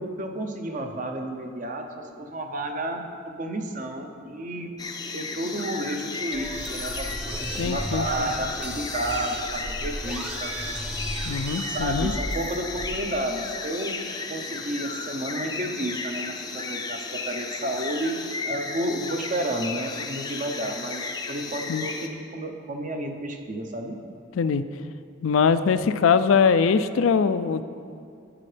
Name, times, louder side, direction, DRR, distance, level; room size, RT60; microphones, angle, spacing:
voice 1, 0.0-4.7 5.1-10.6 11.7-14.0 14.3-18.2 18.5-24.0, right 1 dB, 40° right, 4 dB, 0.7 m, -31 dB
sound 1, 4.8-22.1, left 4 dB, 20° left, 0.5 m, -34 dB
sound 2, 6.3-13.1, equal, 5° right, 0.9 m, -34 dB
voice 2, 7.6-8.3 11.2-12.1 21.7-21.9 24.3-24.6 25.2-27.6, left 6 dB, 80° left, 12 dB, 0.4 m, -22 dB
12.5 x 8.6 x 3.3 m, 2.4 s
head